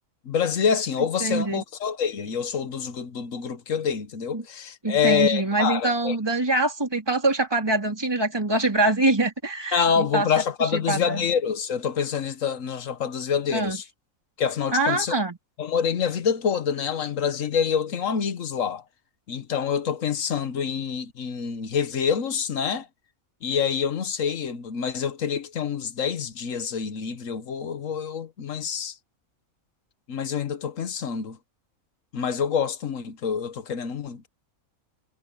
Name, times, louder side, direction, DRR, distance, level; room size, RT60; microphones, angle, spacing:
voice 1, 0.2-6.2 9.7-13.8 14.4-15.1 15.6-18.8 19.3-22.9 23.4-28.9 30.1-31.4 32.1-34.2, left 7 dB, 65° left, 1.4 m, -26 dB
voice 2, 1.2-1.6 4.3-4.4 4.8-10.3 10.6-11.2 13.5-13.8 14.7-15.4, right 2 dB, 15° right, 3.5 m, -24 dB
omnidirectional pair, 1.5 m